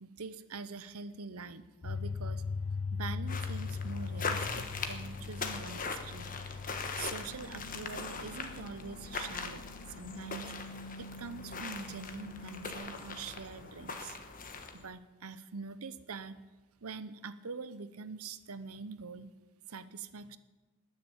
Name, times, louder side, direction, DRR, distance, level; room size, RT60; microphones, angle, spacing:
voice 1, 0.0-2.4 2.9-6.4 7.0-9.6 10.0-10.5 11.0-14.2 14.7-16.4 16.8-19.3 19.7-20.4, right 4 dB, 75° right, 13 dB, 0.8 m, -44 dB
sound 1, 1.8-12.7, left 4 dB, 75° left, 0.8 m, -41 dB
sound 2, 3.3-14.9, left 4 dB, 40° left, 1.3 m, -41 dB
20.0 x 6.7 x 8.6 m, 1.2 s
head